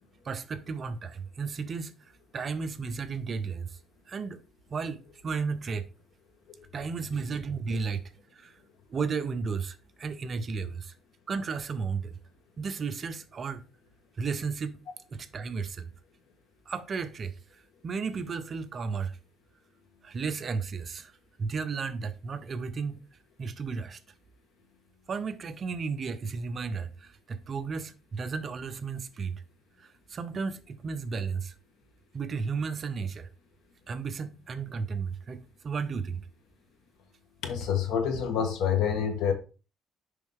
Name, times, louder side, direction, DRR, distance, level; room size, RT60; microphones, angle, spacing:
voice 1, 0.2-3.8 4.1-4.4 4.7-5.9 6.7-8.0 8.3-8.6 8.9-10.9 11.3-12.2 12.6-13.6 14.2-14.8 15.1-15.9 16.7-19.2 20.0-21.1 21.4-23.0 23.4-24.0 25.1-29.4 29.8-31.5 32.1-33.3 33.9-36.3, right 5 dB, 30° right, 0.6 m, -34 dB
voice 2, 37.4-39.3, left 8 dB, 70° left, 1.5 m, -27 dB
6.6 x 5.3 x 3.6 m
cardioid pair, 155°, 0 cm